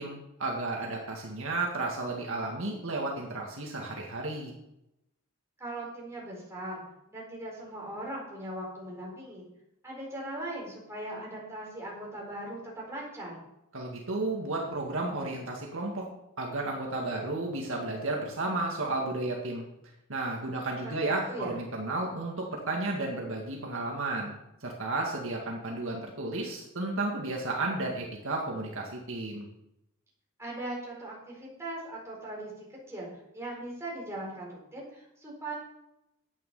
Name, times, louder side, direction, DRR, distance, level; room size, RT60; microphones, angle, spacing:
voice 1, 0.0-4.5 13.7-16.1 16.4-19.7 20.1-24.3 24.6-29.5, right 2 dB, 60° right, -1 dB, 2.0 m, -33 dB
voice 2, 5.6-6.8 7.1-9.5 9.8-13.4 20.8-21.6 30.4-33.1 33.3-35.6, right 1 dB, 15° right, -4 dB, 4.5 m, -39 dB
11.0 x 9.0 x 5.5 m, 0.87 s
head